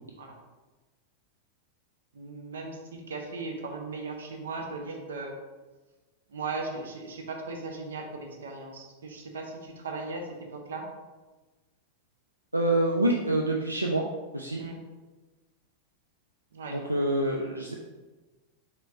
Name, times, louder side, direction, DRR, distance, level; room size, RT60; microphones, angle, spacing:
voice 1, 2.1-5.3 6.3-10.9 14.6-14.8 16.5-16.8, right 3 dB, 65° right, 2 dB, 0.8 m, -37 dB
voice 2, 12.5-14.0 14.3-14.6 16.7-17.7, right 1 dB, 85° right, -1 dB, 0.4 m, -26 dB
4.4 x 4.2 x 2.6 m, 1.2 s
figure-of-eight pair, 90°, 0 cm